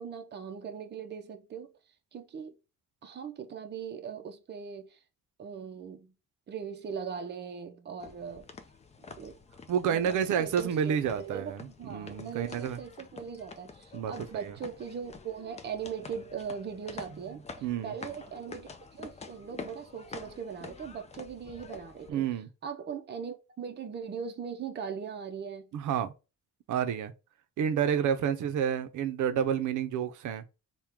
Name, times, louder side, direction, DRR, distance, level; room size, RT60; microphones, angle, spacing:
voice 1, 0.0-1.7 2.1-2.5 3.0-5.0 5.4-6.1 6.5-8.5 9.2-9.4 9.9-22.3 22.6-25.7, right 7 dB, 35° right, 0.6 m, -40 dB
sound 1, 8.0-22.1, left 4 dB, 25° left, 0.4 m, -48 dB
voice 2, 9.7-12.8 13.9-14.5 17.6-17.9 22.1-22.5 25.7-26.1 26.7-27.1 27.6-30.4, right 8 dB, 80° right, 0.5 m, -29 dB
3.5 x 2.2 x 4.3 m
wide cardioid pair, 160°, 30 cm